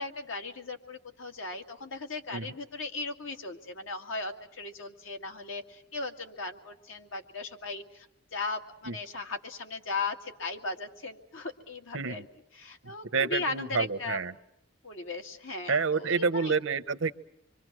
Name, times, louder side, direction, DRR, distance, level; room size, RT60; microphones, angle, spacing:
voice 1, 0.0-8.1 8.3-12.3 12.5-14.2 14.8-16.5, left 3 dB, 85° left, 5 dB, 2.1 m, -37 dB
voice 2, 12.8-14.3 15.7-17.1, right 5 dB, 85° right, 15 dB, 0.9 m, -29 dB
26.0 x 24.0 x 6.1 m, 0.81 s
head